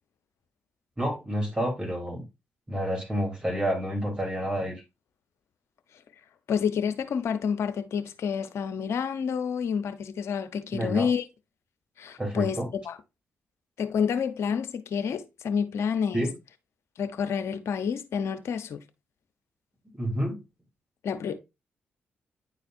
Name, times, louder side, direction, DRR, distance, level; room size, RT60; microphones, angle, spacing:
voice 1, 1.0-2.2 2.7-4.8 10.7-11.1 12.2-12.7 16.1-16.3 20.0-20.4, equal, 20° right, 3.2 m, -29 dB
voice 2, 6.5-11.2 12.0-12.6 12.8-13.0 13.8-16.3 17.0-18.8 21.0-21.4, left 7 dB, 65° left, 0.8 m, -29 dB
9.8 x 4.1 x 2.6 m
hypercardioid pair, 40°, 5 cm